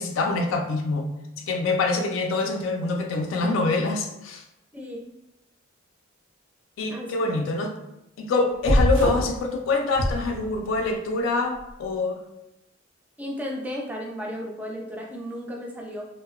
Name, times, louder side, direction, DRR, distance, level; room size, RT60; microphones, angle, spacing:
voice 1, 0.0-4.4 6.8-7.7 8.2-12.2, left 3 dB, 70° left, 3 dB, 0.3 m, -25 dB
voice 2, 4.7-5.0 6.9-7.4 13.2-16.0, equal, 10° right, -1 dB, 0.3 m, -34 dB
sound 1, 8.6-9.4 9.9-10.8, equal, 80° right, 0.5 m, -23 dB
2.7 x 2.0 x 2.4 m, 0.88 s
head